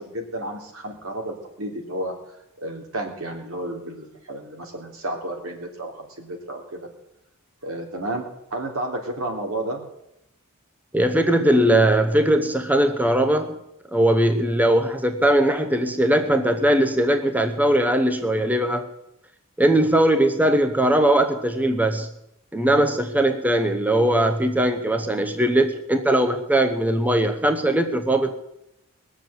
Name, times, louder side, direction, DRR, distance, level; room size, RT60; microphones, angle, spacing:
voice 1, 0.0-2.1 2.6-6.9 7.6-9.8, right 1 dB, 80° right, 2 dB, 3.3 m, -32 dB
voice 2, 10.9-13.5 13.9-18.9 19.6-22.1 22.5-28.3, right 1 dB, 5° right, 6 dB, 0.9 m, -20 dB
20.5 x 7.3 x 7.9 m, 0.83 s
head